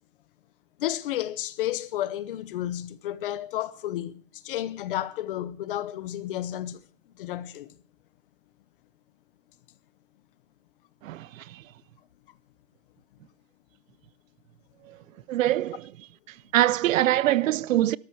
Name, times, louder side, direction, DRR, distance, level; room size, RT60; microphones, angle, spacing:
voice 1, 0.8-6.8 7.2-7.7, left 12 dB, 45° left, 1.0 m, -32 dB
voice 2, 11.0-11.6 15.3-15.9 16.5-18.0, right 14 dB, 90° right, 0.7 m, -23 dB
17.0 x 13.5 x 4.7 m
supercardioid pair, 175°, 39 cm